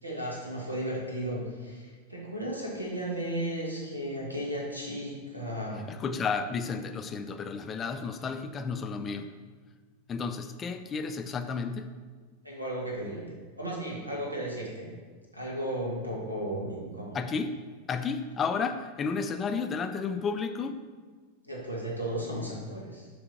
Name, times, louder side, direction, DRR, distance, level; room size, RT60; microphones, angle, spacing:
voice 1, 0.0-5.9 12.4-14.9 15.3-17.2 21.4-23.1, right 1 dB, 85° right, -3 dB, 1.8 m, -35 dB
voice 2, 5.9-9.4 10.1-11.9 17.1-17.6 17.9-20.8, left 5 dB, 25° left, 9 dB, 0.4 m, -32 dB
7.3 x 3.4 x 5.8 m, 1.5 s
figure-of-eight pair, 90°, 0 cm